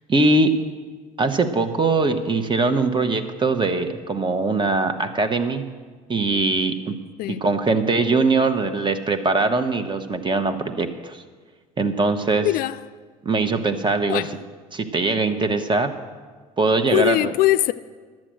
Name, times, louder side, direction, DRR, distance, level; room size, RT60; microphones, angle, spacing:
voice 1, 0.1-0.5 1.2-5.6 6.1-7.0 7.4-11.2 11.8-12.5 13.2-14.2 14.7-15.9 16.6-17.3, right 3 dB, 25° right, 1.2 m, -21 dB
voice 2, 12.4-12.8 14.1-14.4 16.9-17.7, left 15 dB, 60° left, 0.4 m, -21 dB
11.5 x 7.6 x 7.6 m
hypercardioid pair, 65°, 18 cm